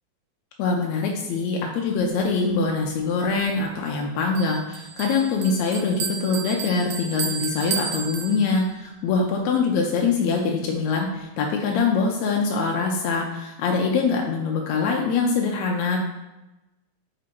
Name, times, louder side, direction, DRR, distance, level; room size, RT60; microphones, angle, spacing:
voice 1, 0.6-16.0, left 4 dB, 80° left, 0 dB, 1.9 m, -24 dB
Bell, 4.4-8.9, right 7 dB, 85° right, 2.1 m, -32 dB
5.1 x 4.9 x 4.4 m, 1.0 s
omnidirectional pair, 3.4 m